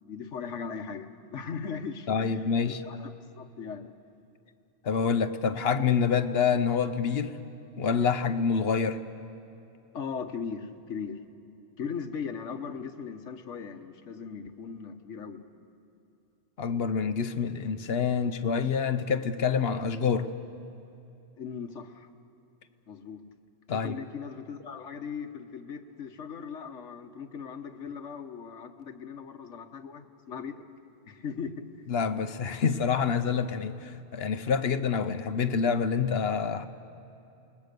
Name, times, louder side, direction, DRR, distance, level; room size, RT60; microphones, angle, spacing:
voice 1, 0.0-3.9 9.9-11.2 11.8-15.4 21.4-22.1 22.9-23.2 23.7-30.6 31.1-31.6, left 6 dB, 80° left, 7 dB, 1.4 m, -38 dB
voice 2, 2.1-2.7 4.8-7.4 7.8-9.0 16.6-20.3 23.7-23.9 31.9-36.7, left 6 dB, 60° left, 10 dB, 1.0 m, -27 dB
28.5 x 20.0 x 6.8 m, 2.8 s
omnidirectional pair, 1.2 m